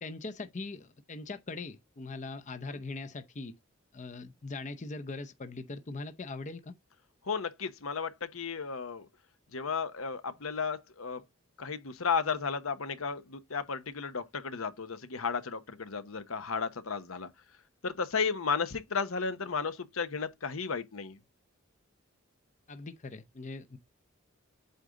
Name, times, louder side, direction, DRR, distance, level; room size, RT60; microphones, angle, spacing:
voice 1, 0.0-3.6 3.9-6.7 22.7-23.8, left 3 dB, 35° left, 0.6 m, -41 dB
voice 2, 7.2-9.1 9.5-11.2 11.6-17.3 17.8-21.2, left 5 dB, 85° left, 1.0 m, -34 dB
8.2 x 3.7 x 3.8 m
head